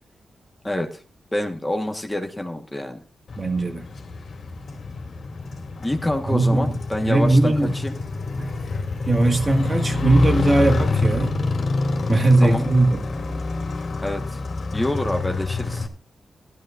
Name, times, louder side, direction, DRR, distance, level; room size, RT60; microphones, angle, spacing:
voice 1, 0.6-1.0 1.3-3.0 5.8-8.0 12.4-12.6 14.0-14.4 14.7-15.9, left 1 dB, 10° left, 1.4 m, -27 dB
Motorcycle, 3.3-15.9, left 3 dB, 55° left, 2.5 m, -27 dB
voice 2, 3.4-3.8 6.3-6.7 7.0-7.7 8.4-8.5 9.0-11.4 12.1-13.0, right 2 dB, 30° right, 1.8 m, -19 dB
16.5 x 13.0 x 2.5 m
wide cardioid pair, 120°, 0 cm